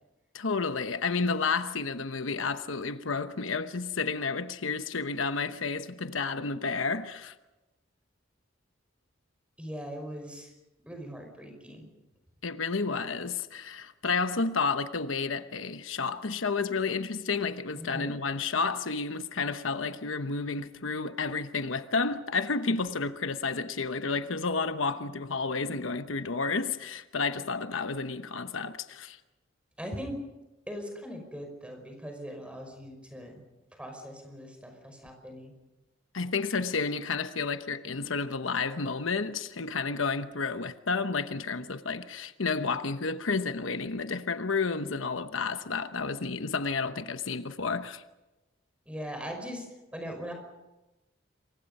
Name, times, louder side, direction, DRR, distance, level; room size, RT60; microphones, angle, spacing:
voice 1, 0.3-7.3 12.4-29.2 36.1-48.0, left 4 dB, 85° left, 1.0 m, -31 dB
voice 2, 9.6-10.5 10.8-11.9 17.8-18.1 29.8-30.2 30.7-33.4 33.7-35.5 48.9-49.7 49.9-50.3, equal, 5° right, 5.4 m, -40 dB
27.5 x 24.0 x 5.5 m
head